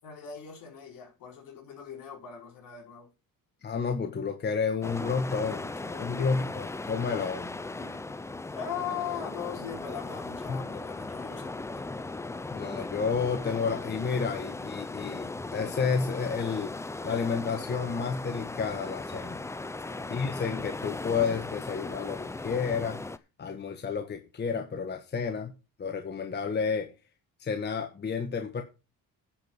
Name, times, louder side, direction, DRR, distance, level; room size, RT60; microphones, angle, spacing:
voice 1, 0.0-3.1 6.2-6.5 7.8-8.1 8.5-11.8 19.9-20.1, left 8 dB, 65° left, 5.4 m, -40 dB
voice 2, 3.6-7.5 10.5-10.6 12.5-16.7 17.0-19.4 20.1-23.0 23.4-25.5 25.8-26.9 27.4-28.6, left 5 dB, 30° left, 1.3 m, -31 dB
sound 1, 4.8-23.2, left 2 dB, 10° left, 0.5 m, -37 dB
10.0 x 5.3 x 7.7 m
cardioid pair, 125°, 35 cm